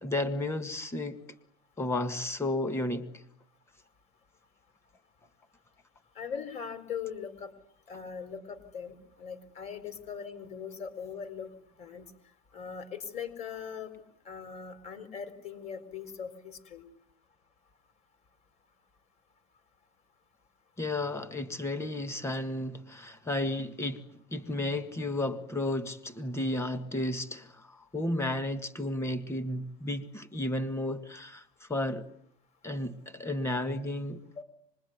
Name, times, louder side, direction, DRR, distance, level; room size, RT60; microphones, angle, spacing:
voice 1, 0.0-1.2 1.8-3.1 20.8-24.0 24.3-31.4 31.7-32.0 32.6-34.2, left 1 dB, 15° left, 12 dB, 1.9 m, -33 dB
voice 2, 6.1-7.5 7.9-11.5 11.8-12.1 12.5-16.8 34.4-34.5, left 7 dB, 35° left, 12 dB, 4.5 m, -40 dB
25.5 x 21.5 x 9.6 m, 0.67 s
cardioid pair, 150°, 18 cm